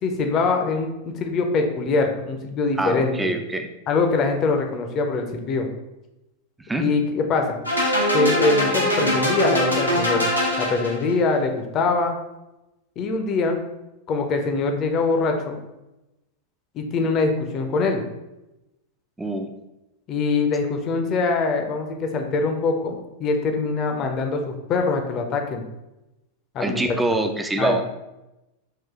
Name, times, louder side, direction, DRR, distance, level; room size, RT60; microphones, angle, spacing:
voice 1, 0.0-3.3 3.9-5.7 6.8-7.6 8.1-10.2 10.6-12.2 13.0-13.6 14.1-15.6 16.7-18.0 20.1-25.6 26.5-26.9 27.6-27.7, left 3 dB, 35° left, 4 dB, 0.7 m, -23 dB
voice 2, 2.8-3.7 6.7-6.9 19.2-19.5 26.6-27.8, right 2 dB, 10° right, 6 dB, 0.5 m, -24 dB
sound 1, 7.7-11.1, equal, 90° left, 1.0 m, -22 dB
5.6 x 2.6 x 3.6 m, 0.97 s
figure-of-eight pair, 90°, 0 cm